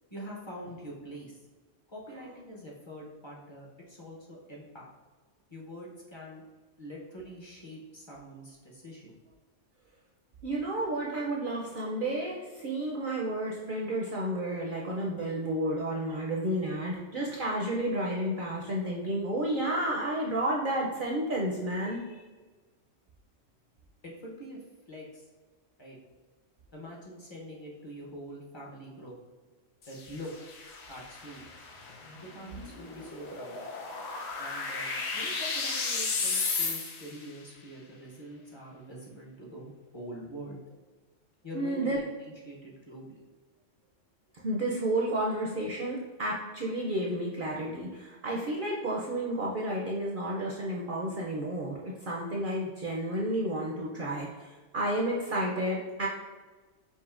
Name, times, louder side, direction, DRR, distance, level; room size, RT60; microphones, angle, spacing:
voice 1, 0.1-1.4 1.9-4.9 5.5-6.4 6.8-9.1 24.0-24.6 24.9-25.2 25.8-26.0 26.7-29.1 29.9-30.3 30.9-31.4 32.2-33.6 34.4-40.6 41.4-43.2, equal, 25° left, -4 dB, 0.7 m, -44 dB
voice 2, 10.4-22.2 41.5-42.0 44.3-56.1, right 1 dB, 55° right, -2 dB, 0.6 m, -31 dB
sound 1, 29.8-37.3, left 4 dB, 65° left, 0.9 m, -34 dB
5.4 x 2.7 x 2.4 m, 1.3 s
omnidirectional pair, 1.3 m